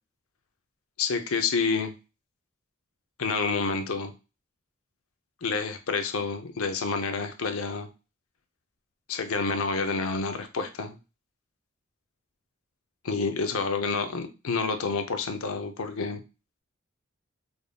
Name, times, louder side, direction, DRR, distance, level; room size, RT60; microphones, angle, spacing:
voice 1, 1.0-1.9 3.2-4.1 5.4-7.9 9.1-11.0 13.0-16.2, left 4 dB, 75° left, 7 dB, 0.6 m, -28 dB
5.0 x 2.6 x 2.2 m, 0.30 s
head